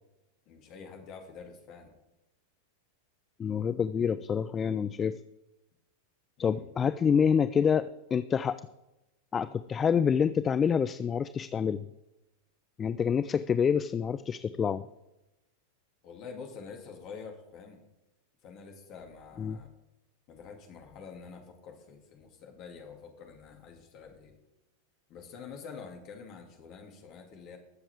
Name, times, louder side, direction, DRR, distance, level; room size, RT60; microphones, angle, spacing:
voice 1, 0.5-1.9 6.4-6.7 16.0-17.8 18.4-19.7 20.3-24.3 25.1-27.6, left 5 dB, 40° left, 3 dB, 2.2 m, -47 dB
voice 2, 3.4-5.2 6.4-8.6 9.3-11.9 12.8-14.9 19.4-19.6, left 7 dB, 20° left, 15 dB, 0.3 m, -27 dB
21.0 x 7.1 x 3.5 m, 0.97 s
figure-of-eight pair, 90°, 0 cm